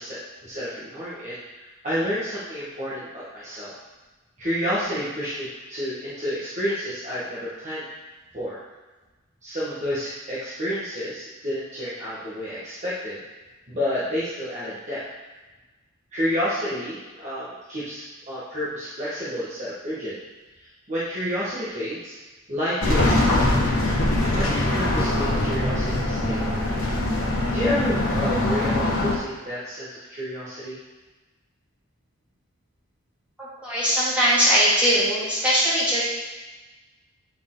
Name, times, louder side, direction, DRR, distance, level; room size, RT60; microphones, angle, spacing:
voice 1, 0.0-3.7 4.4-7.8 8.3-8.6 9.4-13.2 13.7-15.0 16.1-20.1 20.6-22.2 22.5-23.7 24.3-26.6 27.5-30.8, equal, 30° right, -10 dB, 1.4 m, -30 dB
sound 1, 22.8-29.2, left 1 dB, 70° left, 1.4 m, -22 dB
voice 2, 33.4-36.0, equal, 5° right, -11 dB, 2.4 m, -20 dB
8.5 x 4.5 x 3.8 m, 1.2 s
head